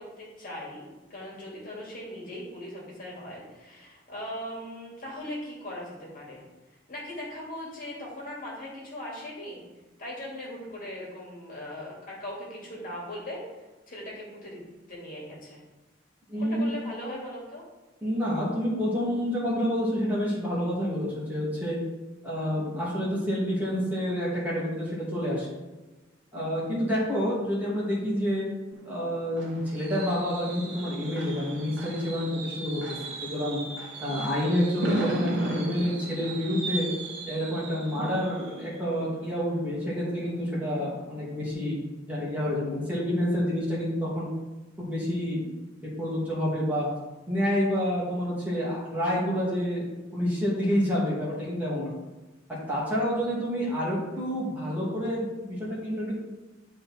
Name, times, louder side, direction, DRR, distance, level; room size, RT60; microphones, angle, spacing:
voice 1, 0.0-6.4 6.9-9.6 10.0-13.4 13.9-14.6 14.9-15.6 16.4-17.6 53.6-53.9, left 1 dB, 45° left, -4 dB, 2.6 m, -39 dB
voice 2, 16.3-16.7 18.0-21.8 22.2-25.5 26.3-28.4 28.8-32.8 33.2-33.6 34.0-36.9 37.2-41.8 42.1-44.3 44.8-45.5 45.8-46.9 47.3-49.9 50.1-51.9 52.5-56.1, equal, 10° right, -7 dB, 2.5 m, -28 dB
Fireworks, 28.7-40.4 40.8-41.1 41.3-41.4, right 2 dB, 65° right, 1.5 m, -37 dB
11.0 x 4.1 x 4.4 m, 1.2 s
head